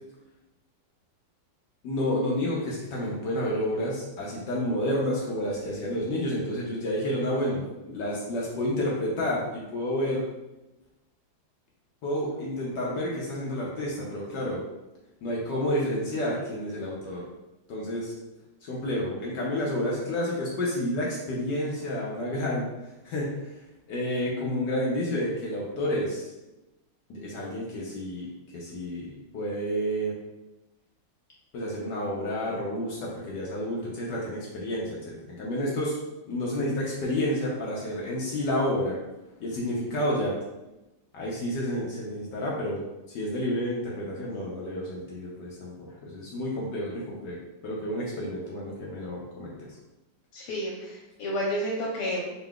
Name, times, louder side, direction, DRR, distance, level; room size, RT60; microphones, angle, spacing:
voice 1, 1.8-10.2 12.0-14.6 15.2-17.2 17.7-18.1 18.6-22.6 23.0-23.5 23.9-26.3 27.1-28.3 28.5-30.1 31.5-36.0 36.3-39.0 39.4-40.3 41.1-42.8 43.1-47.4 47.6-49.7, left 1 dB, 70° left, -4 dB, 1.1 m, -30 dB
voice 2, 50.3-52.2, equal, 85° left, -3 dB, 1.6 m, -30 dB
4.0 x 3.8 x 2.3 m, 1.0 s
omnidirectional pair, 2.4 m